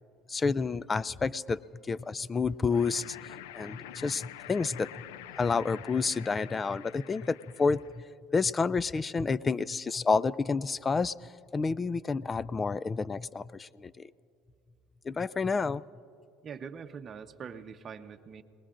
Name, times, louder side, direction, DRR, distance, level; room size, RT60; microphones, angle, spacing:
voice 1, 0.3-4.9 5.4-8.0 8.3-14.1 15.0-15.8, left 4 dB, 25° left, 20 dB, 0.4 m, -30 dB
sound 1, 2.6-8.1, left 12 dB, 85° left, 0.5 m, -47 dB
voice 2, 16.4-18.4, right 6 dB, 40° right, 8 dB, 0.9 m, -43 dB
28.5 x 20.0 x 2.5 m, 2.5 s
supercardioid pair, 90°, 0 cm